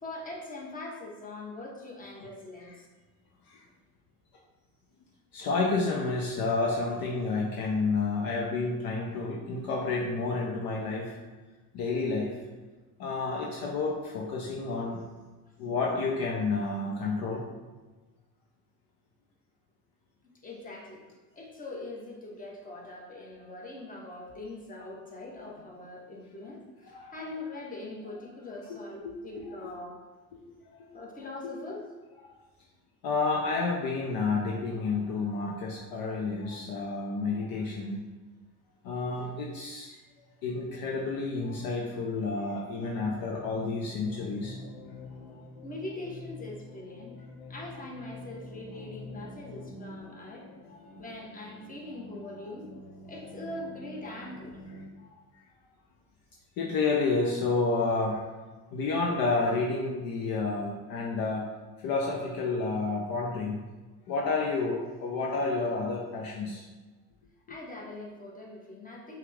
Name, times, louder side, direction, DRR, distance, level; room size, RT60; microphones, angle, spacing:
voice 1, 0.0-2.9 20.4-21.0 21.3-30.0 30.9-31.8 45.6-47.2 47.5-50.4 51.0-52.7 53.0-54.6 67.5-69.2, left 2 dB, 20° left, -2 dB, 1.2 m, -42 dB
voice 2, 5.3-11.2 11.7-12.4 13.0-15.0 15.6-17.5 26.9-27.1 28.7-28.8 29.0-29.5 30.7-30.9 33.0-38.0 38.8-39.9 40.4-44.6 50.7-50.8 52.3-52.5 56.6-58.2 58.7-61.4 61.8-63.6 64.1-66.6, left 3 dB, 50° left, -1 dB, 0.8 m, -30 dB
sound 1, 42.9-54.9, left 2 dB, 75° left, 1.2 m, -47 dB
5.5 x 2.4 x 3.5 m, 1.3 s
hypercardioid pair, 80°, 47 cm